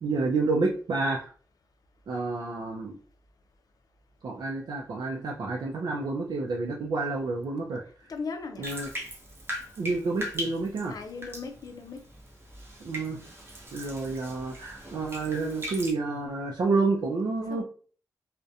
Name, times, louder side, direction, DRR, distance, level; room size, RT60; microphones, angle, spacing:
voice 1, 0.0-1.3 2.1-3.0 4.2-7.8 8.6-8.9 9.8-10.9 12.8-13.2 13.7-17.6, right 3 dB, 80° right, 0.4 m, -29 dB
voice 2, 8.1-8.7 10.9-12.0 17.5-17.6, left 4 dB, 65° left, 0.4 m, -37 dB
Bathtub (filling or washing), 8.6-15.9, equal, 35° right, 0.6 m, -40 dB
2.4 x 2.1 x 2.6 m
wide cardioid pair, 100°, 7 cm